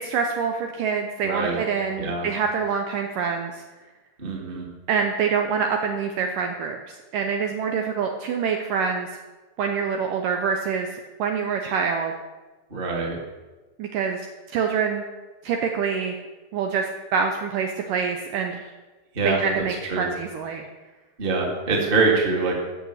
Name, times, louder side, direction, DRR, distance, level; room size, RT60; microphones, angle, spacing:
voice 1, 0.0-3.6 4.9-9.1 9.6-10.9 11.2-12.1 13.8-14.2 14.5-15.0 15.4-16.2 16.5-18.6 19.2-20.7, right 6 dB, 75° right, 4 dB, 2.1 m, -26 dB
voice 2, 1.2-1.6 2.0-2.3 4.2-4.6 12.7-13.2 19.1-19.4 19.8-20.1 21.2-22.6, right 3 dB, 20° right, -1 dB, 1.4 m, -24 dB
13.5 x 6.7 x 7.9 m, 1.2 s
omnidirectional pair, 4.7 m